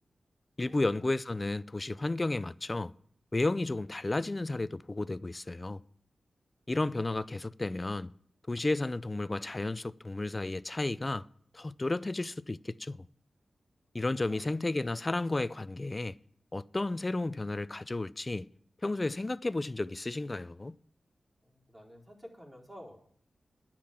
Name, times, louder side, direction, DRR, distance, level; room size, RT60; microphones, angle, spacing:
voice 1, 0.6-2.9 3.3-5.8 6.7-8.1 8.5-11.3 11.5-13.1 13.9-16.2 16.5-18.5 18.8-20.8, left 2 dB, 30° left, 0.5 m, -32 dB
voice 2, 21.4-23.2, equal, 25° right, 3.8 m, -51 dB
10.0 x 7.6 x 8.8 m
cardioid pair, 55°, 0 cm